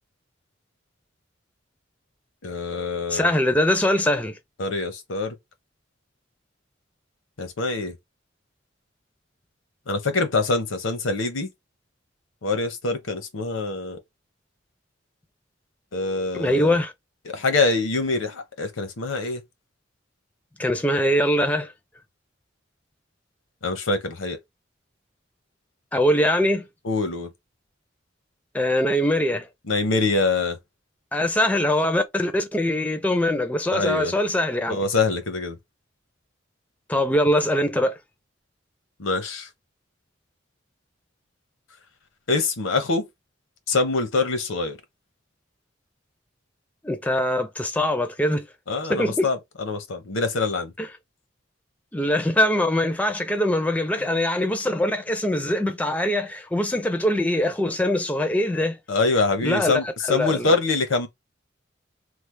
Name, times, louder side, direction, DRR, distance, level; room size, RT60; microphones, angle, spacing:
voice 1, 2.4-3.3 4.6-5.4 7.4-7.9 9.9-11.5 12.4-14.0 15.9-16.8 17.2-19.4 23.6-24.4 26.8-27.3 29.7-30.6 33.7-34.1 34.7-35.6 39.0-39.5 42.3-43.1 43.7-44.8 48.7-50.7 54.0-54.1 58.9-61.1, left 3 dB, 85° left, 0.8 m, -24 dB
voice 2, 3.1-4.4 16.3-16.9 20.6-21.7 25.9-26.7 28.5-29.5 31.1-34.8 36.9-38.0 46.8-48.5 48.9-49.3 50.8-50.9 51.9-58.8 59.4-59.7 60.1-60.6, left 1 dB, 10° left, 0.4 m, -22 dB
3.2 x 2.0 x 3.2 m
head